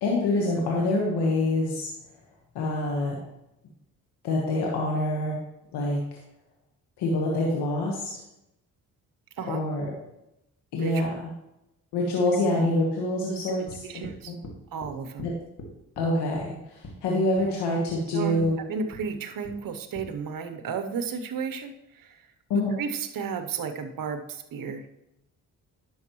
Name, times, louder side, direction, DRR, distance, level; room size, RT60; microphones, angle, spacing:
voice 1, 0.0-1.9 2.5-3.2 4.2-5.4 5.7-6.2 7.0-8.1 9.5-9.9 10.7-11.3 11.9-14.4 15.2-15.3 16.0-18.6 22.5-22.7, left 2 dB, 85° left, -2 dB, 1.4 m, -26 dB
sound 1, 13.7-14.2 14.4-14.9 15.2-15.3 15.6-16.1 16.4-16.5 16.8-17.0 17.4-17.5 17.9-18.0 18.4-18.5 18.9-19.1 19.4-19.6 19.9-20.1, left 1 dB, 50° left, 2.0 m, -42 dB
voice 2, 13.8-14.3 14.7-15.3 18.1-22.2 22.8-24.8, right 5 dB, 60° right, 7 dB, 0.9 m, -33 dB
10.5 x 6.3 x 3.0 m, 0.88 s
supercardioid pair, 55°, 39 cm